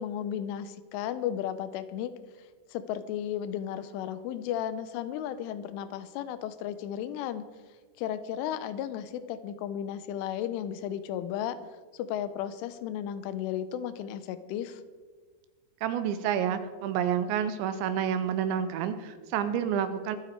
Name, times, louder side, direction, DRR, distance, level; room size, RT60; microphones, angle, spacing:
voice 1, 0.0-2.1 2.7-7.4 8.0-11.6 11.9-14.8, left 10 dB, 85° left, 12 dB, 3.2 m, -34 dB
voice 2, 15.8-20.2, right 8 dB, 80° right, 10 dB, 2.9 m, -29 dB
24.0 x 8.2 x 4.5 m, 1.4 s
omnidirectional pair, 5.5 m